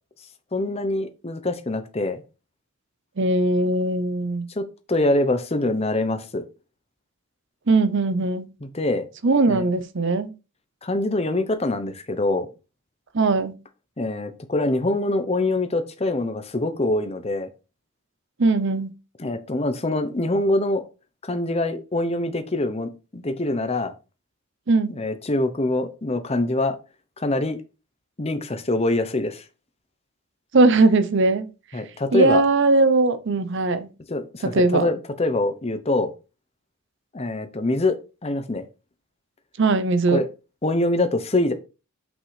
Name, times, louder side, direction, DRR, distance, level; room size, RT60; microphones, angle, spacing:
voice 1, 0.5-2.2 4.6-6.4 8.6-9.1 9.5-9.6 10.8-12.5 14.0-17.5 19.2-20.9 21.2-23.9 24.9-26.8 27.2-27.6 28.2-29.4 31.7-32.4 34.1-36.1 37.1-38.0 38.2-38.6 40.1-40.3 40.6-41.5, left 2 dB, 30° left, 0.7 m, -24 dB
voice 2, 3.2-4.5 7.7-8.5 9.2-10.3 13.1-13.6 18.4-18.9 24.7-24.9 30.5-31.5 32.1-33.9 34.4-34.9 39.6-40.2, right 3 dB, 55° right, 0.6 m, -19 dB
6.0 x 5.3 x 3.2 m
head